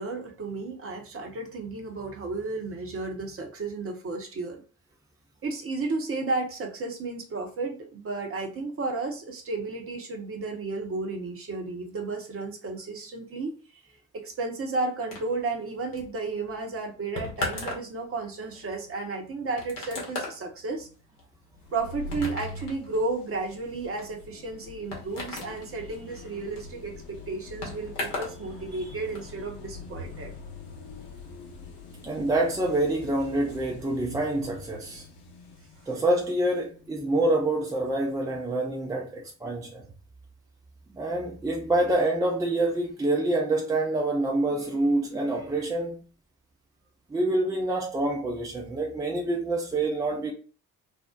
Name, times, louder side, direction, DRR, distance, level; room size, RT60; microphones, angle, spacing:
voice 1, 0.0-4.6 5.4-13.5 14.1-20.9 21.7-30.3, right 3 dB, 30° right, 0.8 m, -33 dB
sound 1, 15.1-28.4 28.7-29.3, left 2 dB, 75° left, 0.9 m, -38 dB
sound 2, 21.6-39.0, left 2 dB, 50° left, 0.8 m, -44 dB
voice 2, 32.0-35.0 35.9-39.8 40.9-46.0 47.1-50.3, right 2 dB, 10° right, 0.4 m, -26 dB
2.7 x 2.0 x 2.3 m
figure-of-eight pair, 45°, 46 cm